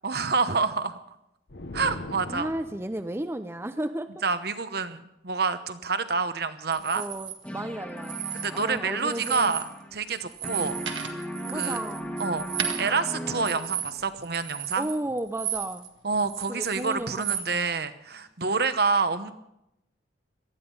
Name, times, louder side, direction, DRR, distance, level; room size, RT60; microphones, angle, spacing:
voice 1, 0.0-1.0 1.7-2.5 4.2-7.1 8.3-10.8 11.1-11.2 11.5-11.8 12.2-14.9 16.0-19.3, right 4 dB, 55° right, 11 dB, 1.0 m, -28 dB
sound 1, 1.5-3.1, left 1 dB, 65° left, 1.1 m, -39 dB
voice 2, 2.3-4.1 6.9-9.6 11.5-12.2 14.8-15.9 16.5-17.7, right 1 dB, 15° right, 9 dB, 0.5 m, -34 dB
sound 2, 6.7-7.3 8.0-8.8 9.1-9.7 10.0-15.9 16.2-17.5, right 10 dB, 80° right, 1.8 m, -34 dB
sound 3, 7.4-10.2 10.4-14.0, equal, 5° left, 1.4 m, -37 dB
18.5 x 13.5 x 5.5 m, 0.85 s
head